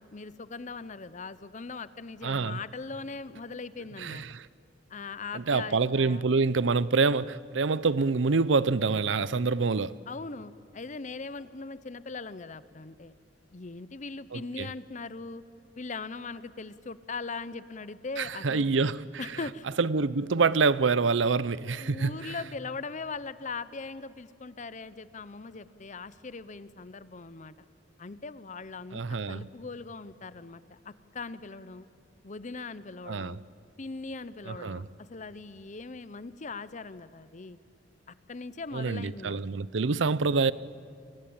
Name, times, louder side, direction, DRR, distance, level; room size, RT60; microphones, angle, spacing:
voice 1, 0.0-4.2 4.9-6.2 10.1-13.1 13.5-15.4 15.8-18.8 19.2-19.7 21.8-27.5 28.0-31.9 32.2-33.4 33.8-37.6 38.3-39.6, left 4 dB, 40° left, 0.7 m, -40 dB
voice 2, 2.2-2.6 4.0-4.5 5.3-10.0 14.3-14.7 18.2-19.3 19.8-22.3 28.9-29.4 33.1-33.4 34.5-34.8 38.7-40.5, right 4 dB, 80° right, 0.6 m, -26 dB
29.5 x 23.0 x 8.8 m
head